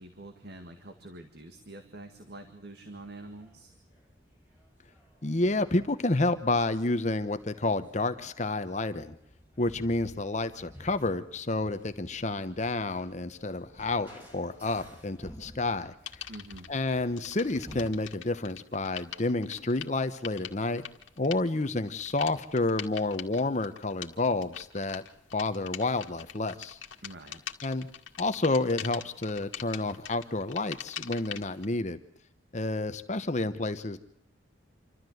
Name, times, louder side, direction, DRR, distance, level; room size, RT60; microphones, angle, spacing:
voice 1, 0.0-3.8 16.3-16.7 27.0-27.4, right 1 dB, 55° right, 5 dB, 1.9 m, -46 dB
sound 1, 2.9-18.2, equal, 10° right, 4.7 m, -53 dB
voice 2, 5.2-9.1 9.6-15.9 16.7-20.8 21.2-25.0 25.3-26.8 27.6-27.9 28.2-32.0 32.5-34.0, left 2 dB, 40° left, 11 dB, 1.0 m, -30 dB
sound 2, 16.1-16.7 17.1-31.7, left 9 dB, 85° left, 1.9 m, -43 dB
27.5 x 13.5 x 7.9 m, 0.76 s
head